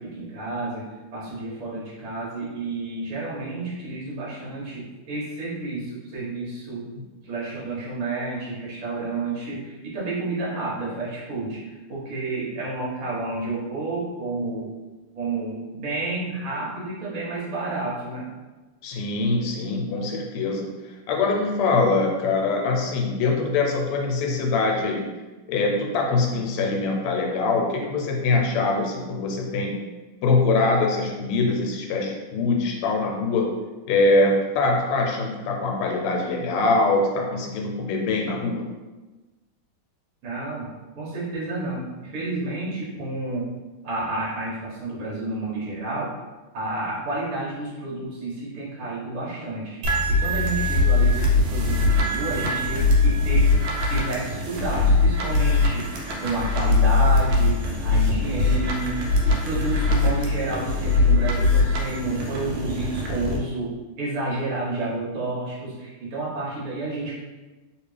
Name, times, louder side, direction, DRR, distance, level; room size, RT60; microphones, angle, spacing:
voice 1, 0.0-6.9 7.2-14.7 15.1-18.3 40.2-43.5 43.8-46.1 46.5-49.8 50.1-55.9 56.2-59.0 59.2-67.1, right 2 dB, 45° right, -7 dB, 1.3 m, -30 dB
voice 2, 18.8-25.0 25.5-29.7 30.2-33.5 33.9-38.6, left 3 dB, 85° left, 0 dB, 1.5 m, -23 dB
sound 1, 49.8-63.4, left 3 dB, 75° right, 1.4 m, -21 dB
3.2 x 2.9 x 3.2 m, 1.2 s
omnidirectional pair, 2.4 m